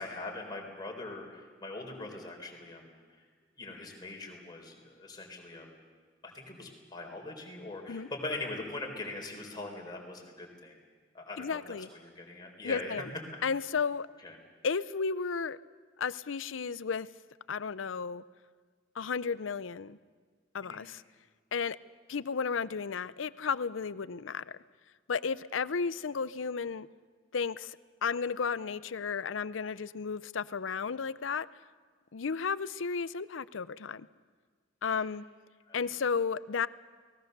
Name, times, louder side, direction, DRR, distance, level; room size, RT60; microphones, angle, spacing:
voice 1, 0.0-3.2 3.6-5.7 6.2-10.7 11.1-12.9 14.2-14.4 20.6-20.8 34.8-35.1 35.7-35.9, left 2 dB, 20° left, 1 dB, 4.0 m, -42 dB
voice 2, 11.4-11.9 12.6-13.1 13.4-14.1 14.6-15.6 16.0-17.1 17.5-18.2 19.0-20.0 20.5-21.0 21.5-21.8 22.1-24.6 25.1-26.9 27.3-27.8 28.0-31.5 32.1-34.1 34.8-35.2 35.7-36.7, left 5 dB, 90° left, 17 dB, 0.6 m, -33 dB
29.0 x 19.5 x 6.7 m, 1.5 s
head